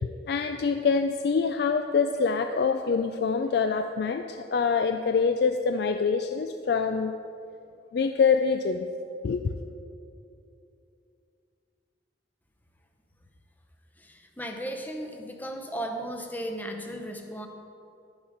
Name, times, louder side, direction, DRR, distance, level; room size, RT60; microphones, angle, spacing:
voice 1, 0.0-7.1 7.9-8.9 9.2-9.5, left 5 dB, 60° left, 7 dB, 0.3 m, -25 dB
voice 2, 14.0-17.5, right 1 dB, 10° left, 4 dB, 0.7 m, -35 dB
11.0 x 7.2 x 5.0 m, 2.7 s
head